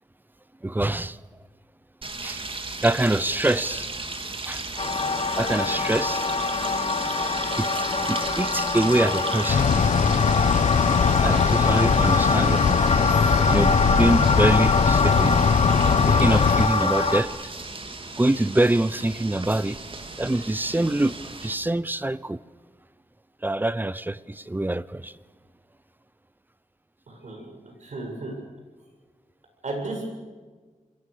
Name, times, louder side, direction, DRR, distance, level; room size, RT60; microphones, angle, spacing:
voice 1, 0.6-1.2 2.2-2.4 2.8-3.9 4.4-4.6 5.3-6.3 7.2-9.7 11.2-12.8 13.4-15.4 16.1-17.3 18.2-19.8 20.2-22.4 23.4-25.1, right 1 dB, 15° right, 0.7 m, -25 dB
sound 1, 2.0-21.5, right 3 dB, 45° right, 2.7 m, -36 dB
sound 2, 4.8-17.2, left 3 dB, 50° left, 2.2 m, -25 dB
sound 3, 9.5-16.7, left 6 dB, 80° left, 1.1 m, -21 dB
voice 2, 27.1-27.5 27.8-28.4 29.6-30.2, right 2 dB, 70° right, 7.7 m, -33 dB
28.5 x 22.0 x 6.9 m
wide cardioid pair, 115°, 13 cm